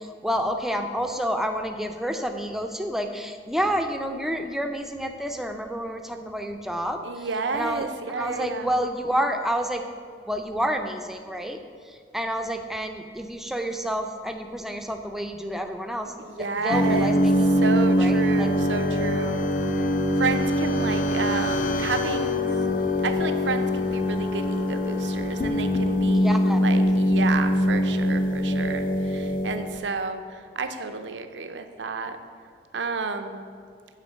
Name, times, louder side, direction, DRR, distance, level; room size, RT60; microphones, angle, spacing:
voice 1, 0.0-7.3 7.5-7.9 8.2-9.8 10.3-11.6 11.9-16.1 16.6-17.2 17.8-18.5 26.1-26.6, equal, ahead, 5 dB, 0.5 m, -29 dB
voice 2, 7.0-8.7 16.2-17.2 17.6-19.4 20.2-22.4 23.0-32.2 32.7-33.5, right 4 dB, 85° right, 8 dB, 0.6 m, -31 dB
sound 1, 16.7-29.9, equal, 50° left, 0.5 m, -23 dB
9.8 x 3.8 x 6.3 m, 2.2 s
head